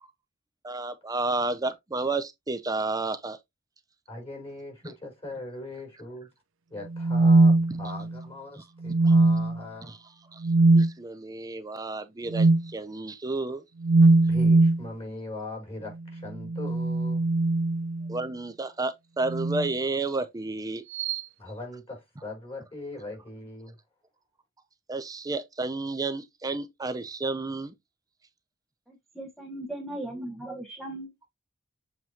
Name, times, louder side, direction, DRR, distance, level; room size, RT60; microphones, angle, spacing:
voice 1, 0.6-3.4 9.9-10.0 10.3-10.4 10.7-13.6 18.1-20.8 24.9-27.7, right 3 dB, 20° right, 0.6 m, -31 dB
voice 2, 4.1-6.3 6.7-9.9 14.3-17.2 21.4-23.7, left 2 dB, 30° left, 4.2 m, -40 dB
sound 1, 6.9-8.2 8.8-9.6 10.4-10.9 12.3-12.7 13.8-14.8 16.3-18.2 19.3-19.7 20.9-21.2, right 2 dB, 65° right, 0.5 m, -21 dB
voice 3, 28.9-31.1, right 1 dB, ahead, 1.1 m, -38 dB
7.6 x 4.5 x 2.7 m
head